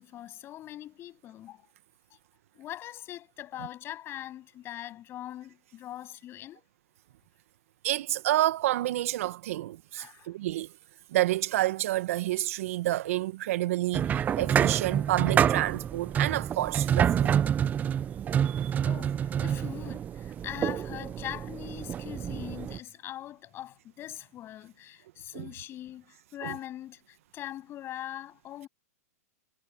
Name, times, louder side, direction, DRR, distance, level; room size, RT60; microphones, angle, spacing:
voice 1, 0.0-1.7 2.5-6.7 10.0-10.3 18.4-28.7, left 13 dB, 30° left, 7.9 m, -42 dB
voice 2, 7.8-10.7 11.1-17.3 18.4-18.7 25.3-25.5 26.4-26.5, right 15 dB, 60° right, 1.1 m, -29 dB
sound 1, 13.9-22.8, right 9 dB, 20° right, 0.6 m, -28 dB
hypercardioid pair, 130°, 9 cm